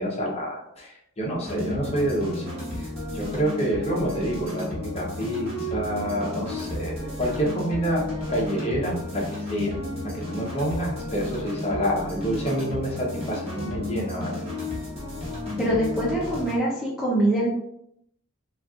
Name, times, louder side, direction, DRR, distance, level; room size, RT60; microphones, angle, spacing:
voice 1, 0.0-4.7 4.9-8.0 8.3-9.8 10.0-14.4, right 1 dB, 30° left, -2 dB, 0.8 m, -28 dB
sound 1, 1.4-16.6, left 1 dB, 30° right, 1.3 m, -33 dB
voice 2, 15.6-17.5, right 1 dB, ahead, -6 dB, 0.5 m, -24 dB
4.1 x 2.4 x 2.4 m, 0.75 s
head